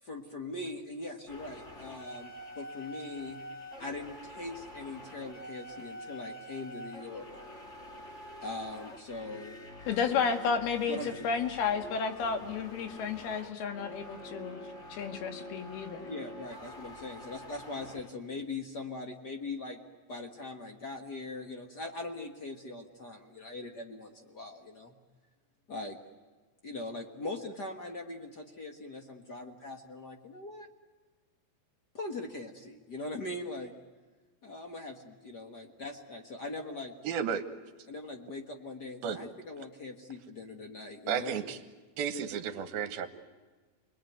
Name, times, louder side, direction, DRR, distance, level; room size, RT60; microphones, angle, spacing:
voice 1, 0.0-3.4 3.8-7.3 8.4-9.6 10.9-11.1 16.0-19.8 20.1-24.9 25.7-26.0 26.6-30.7 31.9-33.7 34.4-36.9 37.9-41.4, left 2 dB, 50° left, 4 dB, 1.2 m, -41 dB
sound 1, 1.3-18.1, equal, 30° left, 1.4 m, -47 dB
voice 2, 9.9-11.0 11.2-14.6 14.9-16.1, left 6 dB, 85° left, 6 dB, 3.8 m, -32 dB
voice 3, 37.0-37.4 39.0-39.2 41.1-41.6 42.0-43.1, right 7 dB, 75° right, 9 dB, 3.1 m, -32 dB
29.5 x 21.0 x 9.4 m, 1.3 s
omnidirectional pair, 4.3 m